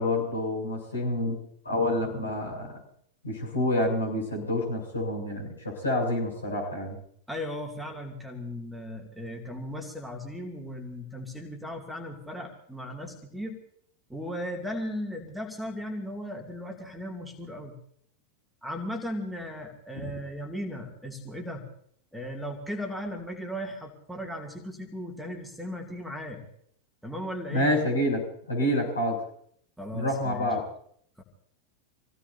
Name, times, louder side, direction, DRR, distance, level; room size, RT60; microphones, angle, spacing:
voice 1, 0.0-1.4 1.6-2.8 3.2-7.0 27.5-29.2 29.9-30.6, left 1 dB, 80° left, -2 dB, 7.0 m, -28 dB
voice 2, 7.3-13.6 14.1-17.8 18.6-21.6 22.1-26.4 27.0-27.7 29.8-30.5 31.2-31.3, equal, ahead, 2 dB, 2.5 m, -37 dB
27.5 x 17.0 x 2.8 m, 0.65 s
figure-of-eight pair, 90°, 0 cm